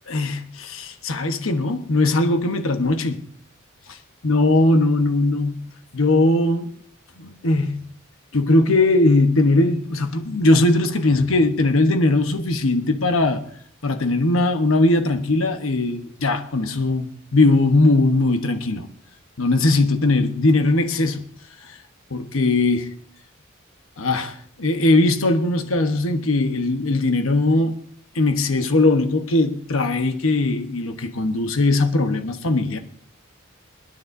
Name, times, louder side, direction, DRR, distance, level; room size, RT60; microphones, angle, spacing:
voice 1, 0.1-3.2 4.2-5.7 5.9-6.7 7.2-7.9 8.3-13.4 13.8-18.9 19.4-21.3 21.7-21.8 22.1-22.9 24.0-27.8 28.1-32.8, left 2 dB, 80° left, 1.1 m, -19 dB
28.5 x 9.6 x 2.7 m
head